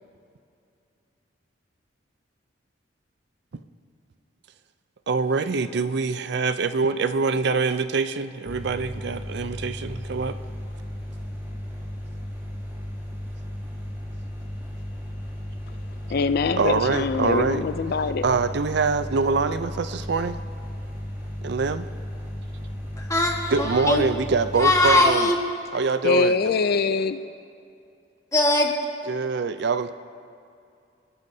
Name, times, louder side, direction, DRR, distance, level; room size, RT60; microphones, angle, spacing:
voice 1, 5.1-10.4 16.6-17.6 18.2-20.4 21.4-21.9 23.5-25.3 25.7-26.4 29.1-29.9, right 4 dB, 60° right, 11 dB, 0.4 m, -24 dB
sound 1, 8.5-25.0, equal, 15° right, 3.0 m, -35 dB
voice 2, 16.1-18.2 26.0-27.2, left 4 dB, 55° left, 11 dB, 0.4 m, -23 dB
voice 3, 23.0-24.0 24.6-25.4 28.3-28.7, left 2 dB, 15° left, 0 dB, 1.4 m, -20 dB
28.5 x 10.5 x 2.7 m, 2.5 s
head